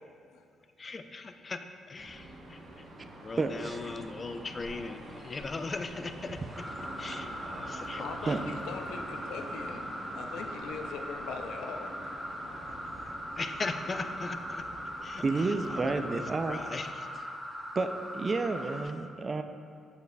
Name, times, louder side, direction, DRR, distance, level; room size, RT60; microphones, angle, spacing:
voice 1, 0.8-1.6 1.9-2.6 3.2-6.4 7.0-8.0 13.4-14.6 15.0-15.5 15.8-16.2 16.5-17.1, left 3 dB, 35° left, 8 dB, 0.4 m, -38 dB
sound 1, 1.9-16.7, right 1 dB, 55° right, 1.0 m, -46 dB
voice 2, 3.4-4.1 6.4-6.5 6.9-7.2 8.3-8.5 15.2-16.6 17.1-17.2 17.8-19.4, right 3 dB, 35° right, 8 dB, 0.4 m, -31 dB
sound 2, 6.5-18.8, equal, ahead, 0.9 m, -40 dB
voice 3, 8.0-12.1 15.3-15.4, left 5 dB, 90° left, 5 dB, 0.5 m, -41 dB
7.9 x 7.1 x 2.3 m, 2.2 s
cardioid pair, 90°, 0 cm